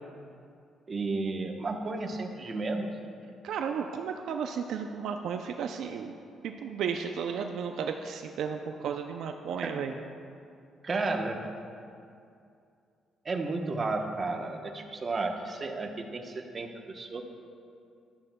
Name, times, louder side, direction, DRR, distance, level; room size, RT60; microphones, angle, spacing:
voice 1, 0.9-2.9 9.6-9.8 10.8-11.5 13.2-17.2, right 3 dB, 40° right, 3 dB, 0.9 m, -33 dB
voice 2, 3.4-6.1 6.4-9.9, right 7 dB, 75° right, 5 dB, 0.4 m, -34 dB
12.0 x 10.5 x 2.2 m, 2.5 s
cardioid pair, 90°, 0 cm